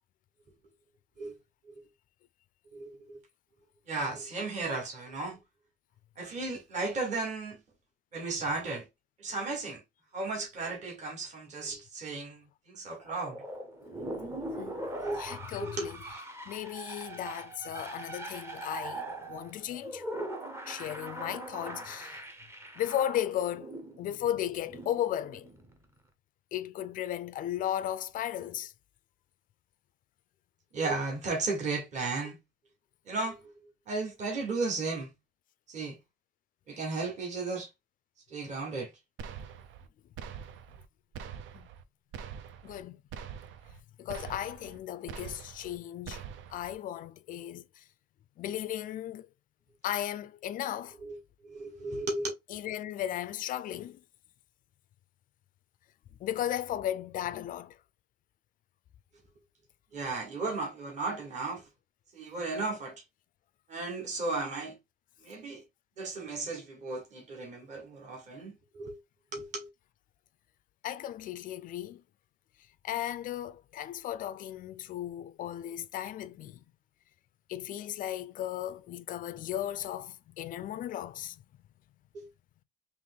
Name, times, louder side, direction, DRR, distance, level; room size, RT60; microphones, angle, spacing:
voice 1, 2.7-3.2 3.9-5.4 6.2-7.6 8.1-8.9 9.2-9.8 10.1-13.4 14.9-15.9 30.7-32.4 33.0-33.4 33.9-35.1 35.7-36.0 36.7-37.7 38.3-38.9 51.1-51.2 51.4-52.3 59.9-61.7 62.1-63.0 63.7-64.8 65.2-65.6 66.0-69.0 69.3-69.7 82.1-82.3, right 3 dB, 35° right, 1.5 m, -35 dB
sound 1, 13.0-25.8, right 1 dB, 10° right, 0.7 m, -41 dB
voice 2, 14.6-14.9 15.2-16.0 16.5-20.0 20.6-22.2 22.8-25.5 26.5-28.7 41.5-41.7 42.6-43.0 44.0-46.2 46.5-47.8 48.4-49.3 49.8-51.0 52.5-54.0 56.2-57.8 70.8-72.0 72.8-76.6 77.5-81.4, left 11 dB, 45° left, 0.4 m, -35 dB
sound 2, 39.2-39.9 40.2-40.9 41.1-41.8 42.1-42.8 43.1-43.8 44.1-44.8 45.1-45.8 46.1-46.7, right 8 dB, 75° right, 0.6 m, -44 dB
3.5 x 3.0 x 3.8 m
cardioid pair, 180°, 20 cm